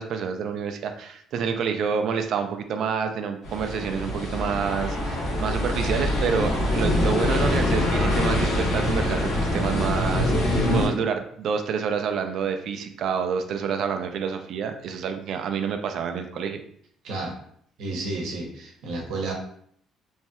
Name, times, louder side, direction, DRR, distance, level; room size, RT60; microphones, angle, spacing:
voice 1, 0.0-16.6, right 6 dB, 55° right, 6 dB, 0.3 m, -28 dB
sound 1, 3.4-10.9, left 1 dB, 75° left, 1.1 m, -24 dB
voice 2, 17.0-17.3 17.8-19.3, right 2 dB, 70° right, 0 dB, 0.8 m, -31 dB
3.1 x 2.8 x 2.3 m, 0.65 s
cardioid pair, 160°, 0 cm